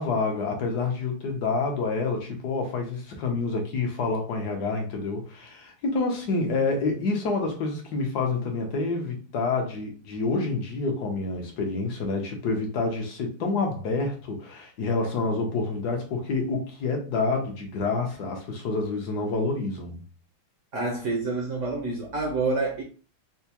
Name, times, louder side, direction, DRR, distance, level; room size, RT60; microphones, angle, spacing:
voice 1, 0.0-20.0, left 3 dB, 65° left, 1.1 m, -28 dB
voice 2, 20.7-22.8, right 3 dB, 70° right, 0.7 m, -27 dB
4.5 x 2.2 x 2.8 m
omnidirectional pair, 2.3 m